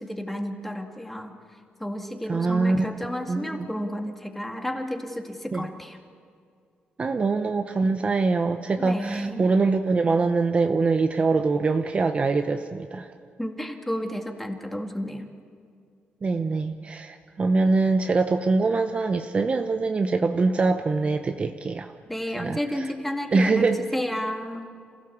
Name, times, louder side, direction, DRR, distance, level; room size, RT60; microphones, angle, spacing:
voice 1, 0.0-1.3 1.8-6.0 8.8-9.5 13.4-15.3 22.1-24.7, equal, 5° left, 4 dB, 2.0 m, -32 dB
voice 2, 2.3-2.9 3.3-3.7 5.5-5.7 7.0-13.1 16.2-21.9 22.4-22.9 23.3-23.8, right 3 dB, 30° right, 6 dB, 0.9 m, -23 dB
27.5 x 16.0 x 7.3 m, 2.2 s
cardioid pair, 120°, 4 cm